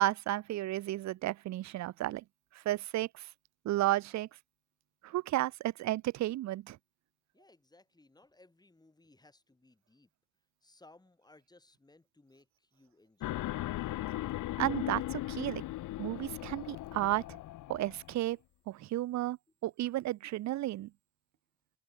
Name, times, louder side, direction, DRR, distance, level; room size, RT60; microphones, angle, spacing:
voice 1, 0.0-2.2 2.5-3.3 3.6-4.3 5.0-6.8 14.6-15.6 16.0-17.4 17.7-18.4 18.7-19.4 19.6-20.9, right 15 dB, 60° right, 0.6 m, -33 dB
voice 2, 7.3-10.1 10.6-13.7, left 2 dB, 10° left, 6.9 m, -62 dB
sound 1, 13.2-18.1, left 15 dB, 70° left, 0.8 m, -38 dB
cardioid pair, 140°, 32 cm